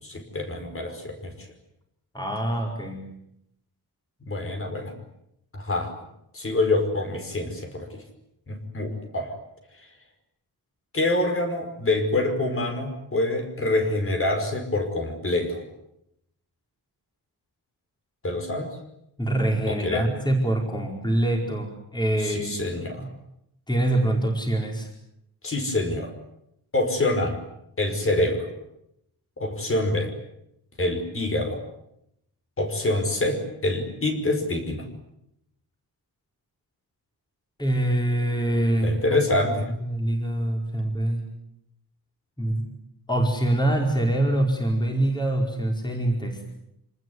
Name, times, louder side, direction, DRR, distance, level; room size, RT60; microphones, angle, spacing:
voice 1, 0.0-1.3 4.2-4.9 5.5-5.9 6.3-8.0 8.5-9.4 10.9-15.6 18.2-18.7 19.7-20.1 22.2-23.1 25.4-26.1 26.7-27.4 27.8-28.5 29.4-30.1 30.8-31.6 32.6-34.9 38.8-39.7, left 2 dB, 35° left, 5 dB, 5.3 m, -26 dB
voice 2, 2.1-3.1 19.2-22.7 23.0-23.1 23.7-24.9 37.6-39.0 39.8-41.2 42.4-42.7 43.1-46.5, right 1 dB, 10° left, 1 dB, 4.9 m, -24 dB
27.5 x 19.5 x 9.5 m, 0.79 s
wide cardioid pair, 170°, 39 cm